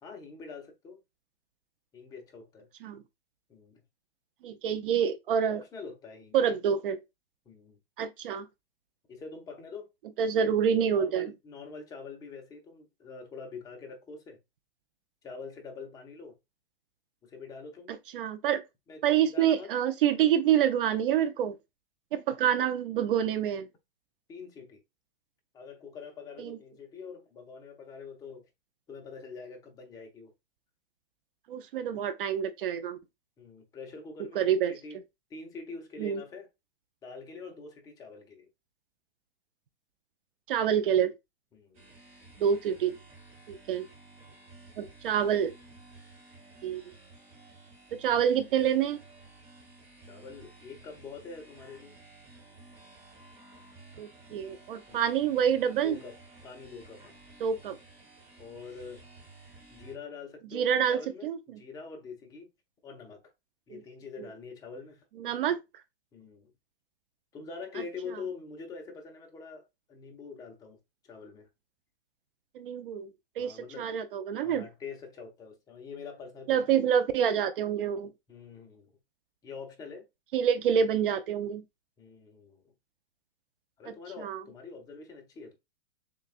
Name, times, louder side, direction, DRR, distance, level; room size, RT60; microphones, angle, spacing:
voice 1, 0.0-1.0 1.9-2.7 3.5-3.8 5.5-6.4 7.5-7.8 9.1-9.9 10.9-14.4 15.2-16.4 17.2-17.9 18.9-19.7 24.3-24.8 25.5-28.4 28.9-30.3 33.4-35.0 35.3-36.5 37.0-38.5 41.5-41.9 50.0-52.0 54.9-55.1 55.8-56.2 56.4-57.2 58.4-59.0 59.7-62.5 62.8-63.3 63.7-65.0 66.1-66.5 67.3-70.8 71.1-71.5 73.4-73.9 74.4-76.8 78.3-78.9 79.4-80.1 82.0-82.7 83.8-85.6, left 4 dB, 10° left, 0.6 m, -45 dB
voice 2, 4.4-5.6 6.3-7.0 8.0-8.5 10.2-11.3 18.1-18.6 19.0-21.6 22.1-23.7 26.4-26.6 31.5-33.0 34.3-34.7 36.0-36.2 40.5-41.1 42.4-43.0 43.5-43.8 44.8-45.5 46.6-46.8 48.0-49.0 54.0-56.0 57.4-57.8 60.5-61.4 63.7-63.8 65.2-65.6 72.5-73.1 73.4-74.7 76.5-78.1 80.3-81.6 84.2-84.4, right 8 dB, 55° right, 0.6 m, -27 dB
sound 1, 41.7-60.0, right 2 dB, 20° right, 1.3 m, -54 dB
6.7 x 2.3 x 2.4 m
hypercardioid pair, 150°, 32 cm